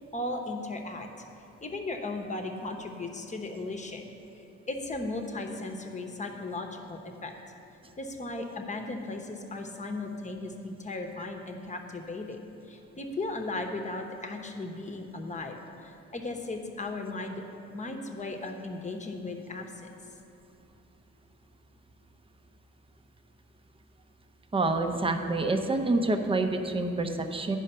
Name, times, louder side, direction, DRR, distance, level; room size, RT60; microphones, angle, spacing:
voice 1, 0.1-1.1 1.6-7.4 8.0-12.4 12.6-15.6 15.8-17.4 17.7-19.9, left 2 dB, 25° left, 4 dB, 1.0 m, -36 dB
voice 2, 24.5-27.6, right 2 dB, 20° right, 6 dB, 0.7 m, -27 dB
10.5 x 5.0 x 5.6 m, 2.8 s
cardioid pair, 90°, 30 cm